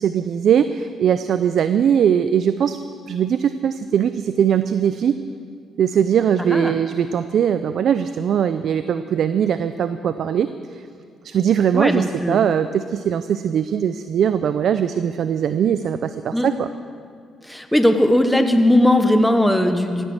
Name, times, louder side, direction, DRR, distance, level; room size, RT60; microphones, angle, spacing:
voice 1, 0.0-2.8 3.1-5.1 5.8-10.5 10.7-10.8 11.2-16.7, right 8 dB, 65° right, 11 dB, 0.5 m, -20 dB
voice 2, 6.4-6.7 11.7-12.4 16.3-16.5 17.4-20.0, left 1 dB, 5° left, 6 dB, 1.1 m, -18 dB
16.5 x 10.0 x 7.9 m, 2.2 s
cardioid pair, 90°, 0 cm